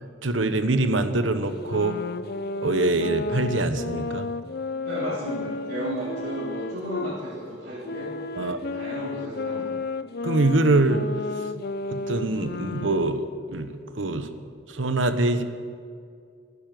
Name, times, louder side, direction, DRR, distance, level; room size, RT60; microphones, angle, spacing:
voice 1, 0.2-2.0 2.6-4.3 8.4-8.6 10.2-11.0 11.9-14.3 14.7-15.4, right 2 dB, 90° right, 9 dB, 1.1 m, -24 dB
sound 1, 1.5-7.2 7.8-13.2, left 3 dB, 55° left, 0.6 m, -32 dB
voice 2, 4.8-9.8, right 1 dB, 55° right, -10 dB, 3.9 m, -34 dB
16.0 x 10.0 x 7.7 m, 2.3 s
head